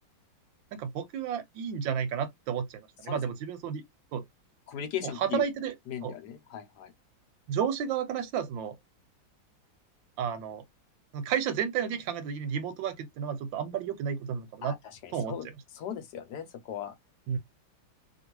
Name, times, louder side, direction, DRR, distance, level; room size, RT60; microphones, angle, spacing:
voice 1, 0.7-3.8 4.1-4.2 5.0-5.7 6.0-6.2 7.5-8.8 10.2-10.6 11.1-14.8 15.1-15.3 17.3-17.4, right 8 dB, 80° right, 1.3 m, -32 dB
voice 2, 4.7-5.4 5.9-6.9 14.6-15.5 15.7-16.9, left 9 dB, 65° left, 1.1 m, -38 dB
2.9 x 2.7 x 2.9 m
omnidirectional pair, 2.2 m